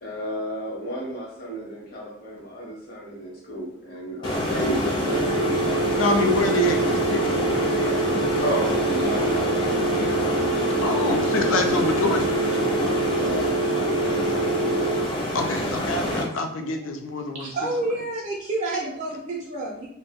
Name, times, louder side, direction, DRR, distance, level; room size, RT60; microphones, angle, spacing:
voice 1, 0.0-5.6 8.4-10.1 13.2-14.9 16.6-16.8, right 1 dB, 50° left, -2 dB, 0.8 m, -33 dB
sound 1, 4.2-16.2, left 1 dB, 25° left, 0.5 m, -26 dB
sound 2, 5.1-15.1, right 3 dB, 90° right, 0.5 m, -26 dB
voice 2, 6.0-8.4 10.8-12.3 15.3-17.5, left 2 dB, 80° left, 5 dB, 0.4 m, -26 dB
voice 3, 17.3-19.9, right 2 dB, 35° right, -4 dB, 0.4 m, -29 dB
2.5 x 2.0 x 3.5 m, 0.71 s
head